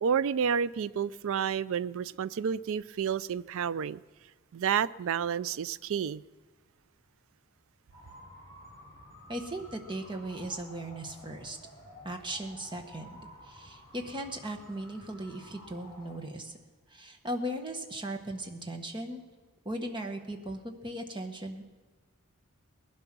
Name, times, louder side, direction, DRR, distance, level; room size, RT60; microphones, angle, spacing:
voice 1, 0.0-4.0 4.5-6.2, right 7 dB, 65° right, 0.4 m, -30 dB
sound 1, 7.9-16.2, left 1 dB, 15° left, 6.3 m, -52 dB
voice 2, 9.3-11.6 12.0-16.6 16.9-19.2 19.6-21.6, right 1 dB, 20° right, 1.4 m, -38 dB
19.5 x 11.5 x 6.1 m
head